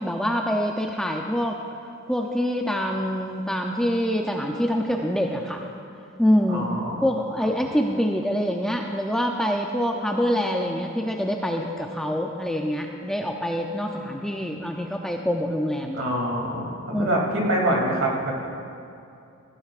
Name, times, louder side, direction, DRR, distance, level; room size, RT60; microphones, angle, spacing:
voice 1, 0.0-1.6 2.1-5.7 6.2-6.6 7.0-16.1 16.9-17.2, equal, 5° left, 1 dB, 0.5 m, -25 dB
voice 2, 6.5-7.0 15.9-18.5, right 1 dB, 60° right, -2 dB, 2.6 m, -25 dB
18.0 x 15.0 x 2.5 m, 2.6 s
head